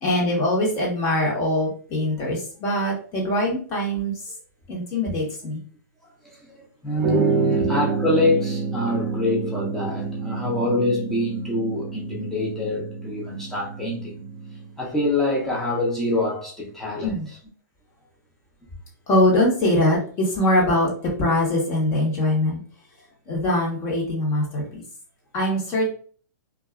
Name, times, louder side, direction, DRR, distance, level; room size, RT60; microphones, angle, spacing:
voice 1, 0.0-4.1 4.7-5.6 7.6-7.7 17.0-17.3 19.1-20.9 21.2-22.6 23.3-24.8 25.3-25.9, left 1 dB, 30° left, 1.0 m, -22 dB
voice 2, 6.4-14.3 14.8-17.4, left 1 dB, 5° left, 0.7 m, -25 dB
sound 1, 7.0-14.7, right 4 dB, 30° right, 0.7 m, -28 dB
2.6 x 2.3 x 2.3 m
hypercardioid pair, 145°, 10 cm